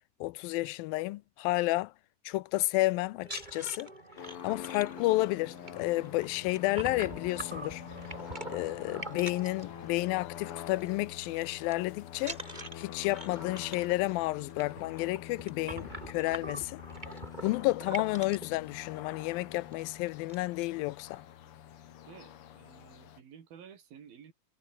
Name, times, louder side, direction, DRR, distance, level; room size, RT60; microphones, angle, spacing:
voice 1, 0.2-1.9 2.3-3.9 4.4-7.8 8.5-12.4 12.8-16.8 17.4-21.2, left 19 dB, 85° left, 2.4 m, -31 dB
sound 1, 3.2-10.3 10.6-10.9 11.2-11.7 12.2-18.6 19.2-19.3 19.7-19.8 20.1-20.6, right 2 dB, 15° right, 3.1 m, -44 dB
sound 2, 4.2-23.2, left 11 dB, 65° left, 1.4 m, -45 dB
voice 2, 22.1-24.3, right 8 dB, 80° right, 4.9 m, -52 dB
omnidirectional pair, 4.1 m